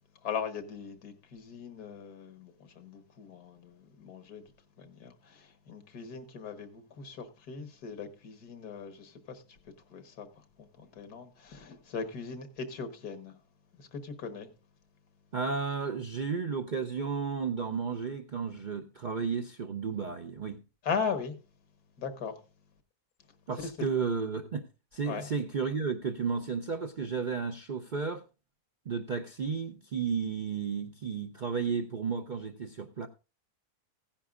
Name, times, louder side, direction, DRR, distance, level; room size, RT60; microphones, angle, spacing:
voice 1, 0.2-4.4 4.8-9.4 9.9-10.3 10.6-13.3 13.8-14.5 20.8-21.4 22.0-22.4 23.6-23.9 25.1-25.3, left 6 dB, 85° left, 1.8 m, -39 dB
voice 2, 15.3-20.6 23.5-24.7 24.9-28.2 28.9-33.1, right 5 dB, 60° right, 0.5 m, -33 dB
16.0 x 10.0 x 2.4 m
omnidirectional pair, 1.6 m